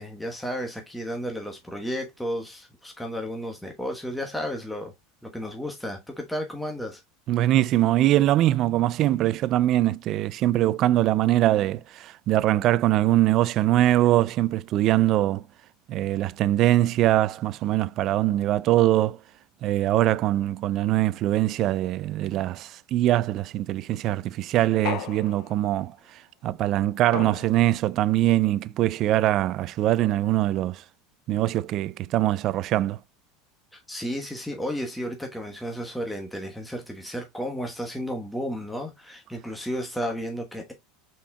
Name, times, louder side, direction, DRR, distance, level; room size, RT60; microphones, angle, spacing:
voice 1, 0.0-4.9 5.3-7.0 33.7-40.7, equal, 5° left, 1.1 m, -33 dB
voice 2, 7.3-15.4 15.9-19.2 19.6-30.8 31.3-33.0, right 14 dB, 50° right, 0.3 m, -22 dB
sound 1, 24.8-25.8 27.1-28.0, left 11 dB, 60° left, 0.6 m, -35 dB
5.4 x 4.3 x 2.2 m
hypercardioid pair, 100°, 0 cm